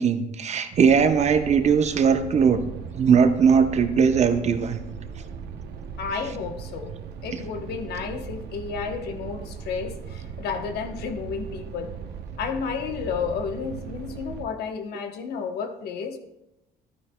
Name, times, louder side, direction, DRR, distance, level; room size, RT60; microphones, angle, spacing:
voice 1, 0.0-2.6 3.0-4.8, right 6 dB, 40° right, 8 dB, 0.7 m, -19 dB
sound 1, 0.7-14.4, right 6 dB, 75° right, 0.8 m, -38 dB
voice 2, 6.0-7.0 7.2-11.9 12.4-16.2, left 6 dB, 70° left, 7 dB, 1.0 m, -32 dB
11.5 x 9.8 x 2.2 m, 0.91 s
cardioid pair, 110°, 17 cm